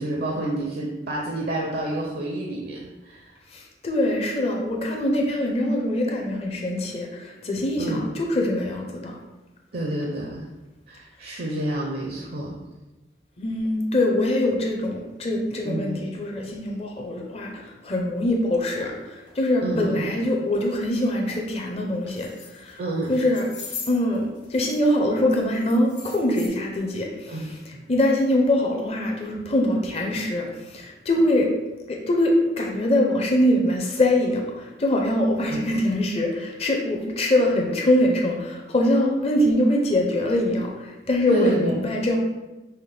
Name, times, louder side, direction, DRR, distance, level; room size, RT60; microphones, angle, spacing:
voice 1, 0.0-3.4 7.8-8.1 9.7-10.4 10.9-12.6 15.6-15.9 19.6-20.0 22.8-23.2 27.3-27.8 35.5-35.6 41.3-41.7, right 1 dB, 55° right, -2 dB, 0.5 m, -29 dB
voice 2, 3.5-9.2 13.4-22.8 23.1-23.5 23.9-27.5 27.9-31.5 31.9-42.2, left 1 dB, 35° left, 1 dB, 0.5 m, -23 dB
sound 1, 18.6-18.7 19.3-19.4 19.9-20.1 20.5-20.7 21.0-21.4 22.0-22.7 23.0-24.9 25.1-26.5, left 5 dB, 80° left, 0.9 m, -41 dB
5.5 x 2.1 x 3.2 m, 1.0 s
head